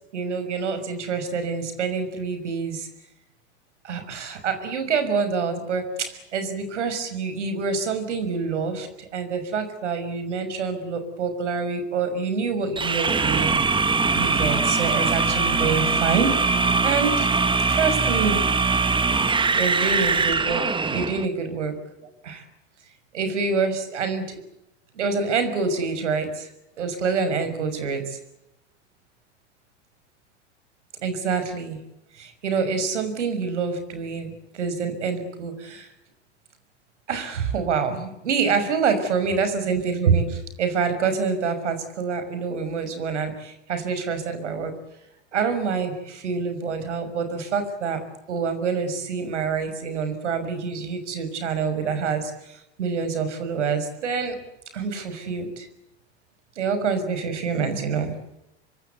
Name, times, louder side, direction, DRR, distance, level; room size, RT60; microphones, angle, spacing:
voice 1, 0.1-2.9 3.8-13.9 14.1-16.4 16.8-17.3 17.7-18.4 19.5-21.8 22.2-22.4 23.1-24.4 24.9-26.5 26.8-28.2 31.0-31.8 32.1-35.9 37.1-44.7 45.3-48.0 48.3-54.4 54.7-55.7 56.6-58.1, right 5 dB, 85° right, 9 dB, 6.0 m, -26 dB
sound 1, 12.8-21.3, right 4 dB, 15° right, 1.6 m, -22 dB
26.5 x 24.0 x 8.2 m, 0.87 s
hypercardioid pair, 100°, 35 cm